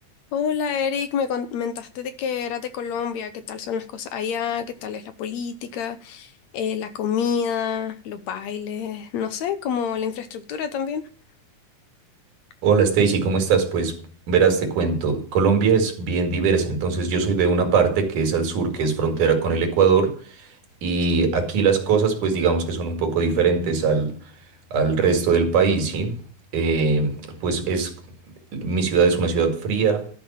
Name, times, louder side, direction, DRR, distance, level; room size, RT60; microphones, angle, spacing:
voice 1, 0.3-11.0, left 7 dB, 70° left, 1.9 m, -28 dB
voice 2, 12.6-14.0 14.3-20.5 20.8-24.2 24.7-26.2 26.5-28.0 28.5-30.1, right 5 dB, 75° right, 3.6 m, -21 dB
12.0 x 5.4 x 7.1 m
omnidirectional pair, 3.6 m